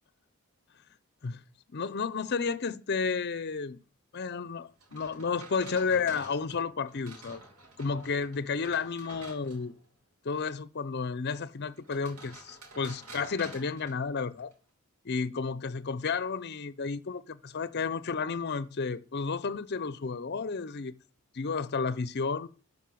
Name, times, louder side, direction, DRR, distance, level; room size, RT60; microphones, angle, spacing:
voice 1, 1.7-3.8 4.1-7.4 7.8-9.7 10.2-14.5 15.0-20.9 21.3-22.5, left 5 dB, 50° left, 0.6 m, -32 dB
sound 1, 4.8-9.8 11.8-14.5, right 2 dB, 75° right, 4.1 m, -50 dB
12.5 x 5.4 x 7.7 m
head